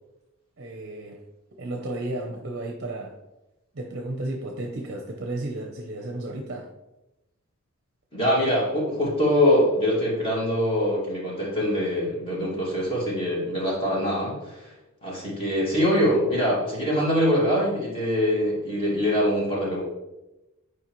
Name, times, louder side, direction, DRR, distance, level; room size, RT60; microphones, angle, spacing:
voice 1, 0.6-1.2 1.6-3.2 3.7-6.7, right 2 dB, 50° right, 2 dB, 0.7 m, -33 dB
voice 2, 8.1-14.7 15.0-19.8, equal, 25° left, -5 dB, 2.0 m, -23 dB
8.5 x 4.7 x 3.1 m, 0.98 s
head